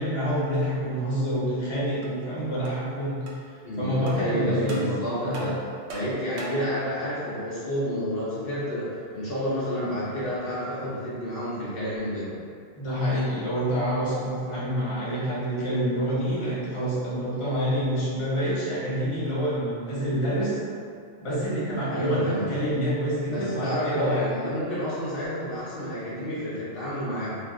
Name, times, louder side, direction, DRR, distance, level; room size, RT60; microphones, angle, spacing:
voice 1, 0.0-3.2 3.8-4.8 5.2-5.5 12.8-20.6 21.2-24.2, equal, 30° left, -9 dB, 0.8 m, -27 dB
sound 1, 2.0-2.1 2.6-2.8 3.3-3.4 4.1-4.2 4.7-4.9 5.3-6.7, right 2 dB, 80° right, 0.9 m, -37 dB
voice 2, 3.6-5.5 5.9-12.3 21.9-22.5 23.3-27.4, equal, 60° left, -10 dB, 0.8 m, -30 dB
2.5 x 2.4 x 3.6 m, 2.3 s
omnidirectional pair, 1.1 m